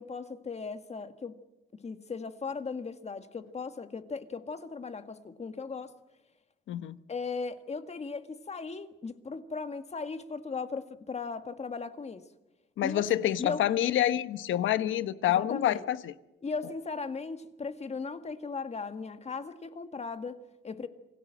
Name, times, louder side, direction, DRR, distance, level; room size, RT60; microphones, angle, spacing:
voice 1, 0.0-1.3 1.8-5.9 7.1-12.2 12.8-13.1 13.4-13.6 15.2-15.8 16.4-20.9, left 4 dB, 35° left, 1.8 m, -37 dB
voice 2, 6.7-7.0 12.8-16.1, left 12 dB, 80° left, 1.0 m, -27 dB
27.0 x 18.0 x 7.7 m
cardioid pair, 90°, 20 cm